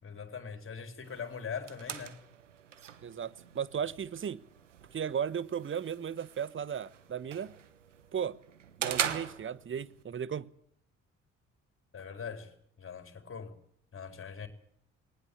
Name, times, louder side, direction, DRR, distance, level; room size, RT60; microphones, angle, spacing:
voice 1, 0.0-2.2 11.9-13.6 13.9-14.5, left 6 dB, 35° left, 4.3 m, -42 dB
sound 1, 1.0-10.0, right 9 dB, 85° right, 1.3 m, -41 dB
voice 2, 3.0-4.4 4.9-7.5 8.1-8.4 8.8-10.5, right 8 dB, 35° right, 1.2 m, -35 dB
19.5 x 19.5 x 8.6 m
figure-of-eight pair, 45°, 36 cm